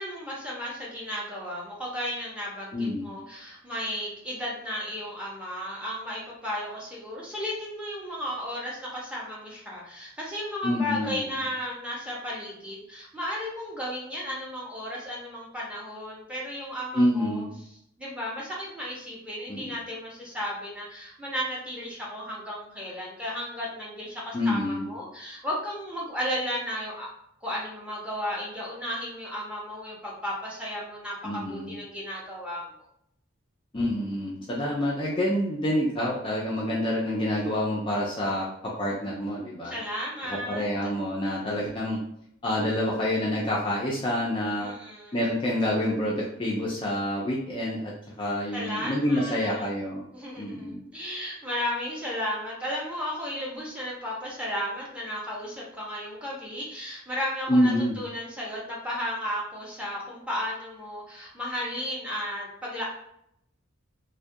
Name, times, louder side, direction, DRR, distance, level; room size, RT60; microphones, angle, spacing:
voice 1, 0.0-17.4 18.0-27.1 27.4-32.7 39.6-40.7 44.6-45.2 48.5-49.7 50.1-57.7 58.0-62.8, equal, 5° right, -5 dB, 0.7 m, -34 dB
voice 2, 2.7-3.1 10.6-11.2 16.9-17.6 19.5-19.7 24.3-24.9 31.2-31.8 33.7-39.8 40.2-42.0 42.4-44.7 45.1-50.0 50.4-50.8 57.5-58.0, left 1 dB, 25° left, -5 dB, 0.4 m, -27 dB
2.3 x 2.1 x 2.6 m, 0.73 s
head